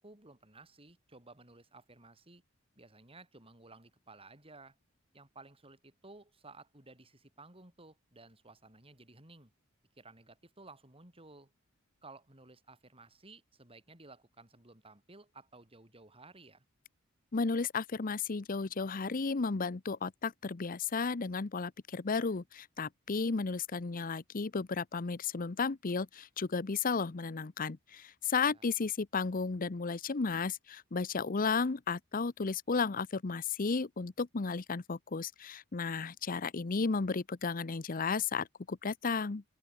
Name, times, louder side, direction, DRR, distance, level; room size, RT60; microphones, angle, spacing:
voice 1, 0.0-2.4 2.8-4.7 5.1-9.5 10.0-11.5 12.0-16.6 28.5-28.7, right 3 dB, 30° right, 4.5 m, -56 dB
voice 2, 17.3-39.4, left 4 dB, 45° left, 0.7 m, -33 dB
open air
head